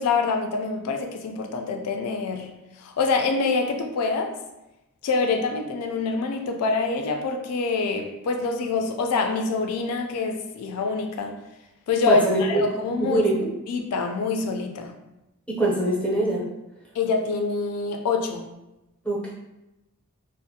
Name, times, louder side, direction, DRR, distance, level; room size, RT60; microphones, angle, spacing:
voice 1, 0.0-4.3 5.0-11.4 11.9-13.2 13.7-14.9 16.9-18.5, left 4 dB, 80° left, 4 dB, 0.3 m, -25 dB
voice 2, 12.1-12.6 13.0-13.5 15.5-16.4 19.0-19.3, right 1 dB, 5° left, -5 dB, 0.5 m, -23 dB
2.4 x 2.0 x 2.6 m, 0.95 s
head